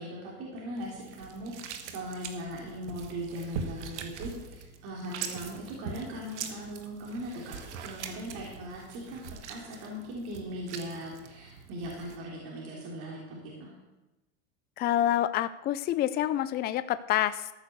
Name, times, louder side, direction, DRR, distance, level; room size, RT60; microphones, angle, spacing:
voice 1, 0.0-7.6 7.8-9.2 9.5-13.7, equal, 55° right, -3 dB, 3.4 m, -39 dB
sound 1, 0.8-12.2, right 6 dB, 85° right, 1.5 m, -42 dB
voice 2, 14.8-17.5, left 12 dB, 30° left, 14 dB, 0.4 m, -27 dB
13.5 x 6.6 x 6.8 m, 1.0 s
supercardioid pair, 115°, 34 cm